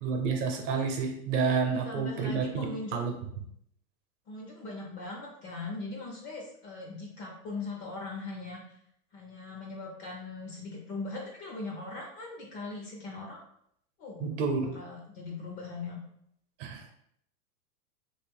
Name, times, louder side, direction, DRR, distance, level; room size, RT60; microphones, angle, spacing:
voice 1, 0.0-2.6 2.9-3.1 14.2-14.7 16.6-16.8, right 5 dB, 50° right, 5 dB, 0.8 m, -29 dB
voice 2, 1.7-3.0 4.3-8.7 9.1-13.4 14.0-16.0, left 3 dB, 25° left, -1 dB, 0.4 m, -40 dB
3.1 x 2.6 x 3.4 m, 0.72 s
hypercardioid pair, 130°, 46 cm